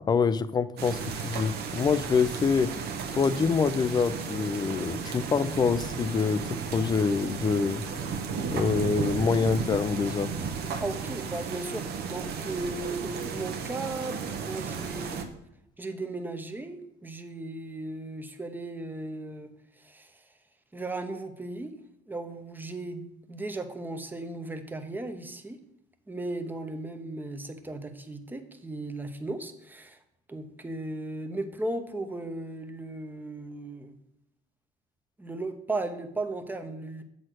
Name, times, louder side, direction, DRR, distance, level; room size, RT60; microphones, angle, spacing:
voice 1, 0.1-2.7 3.1-7.8 8.5-10.3, left 5 dB, 25° left, 15 dB, 0.4 m, -26 dB
sound 1, 0.8-15.2, right 5 dB, 70° right, 1.0 m, -34 dB
voice 2, 10.8-15.3 15.8-20.3 20.7-21.7 22.1-25.6 26.1-30.0 30.3-33.9 35.2-37.0, right 2 dB, 10° right, 8 dB, 0.9 m, -36 dB
7.8 x 4.2 x 6.2 m, 0.78 s
cardioid pair, 110°, 17 cm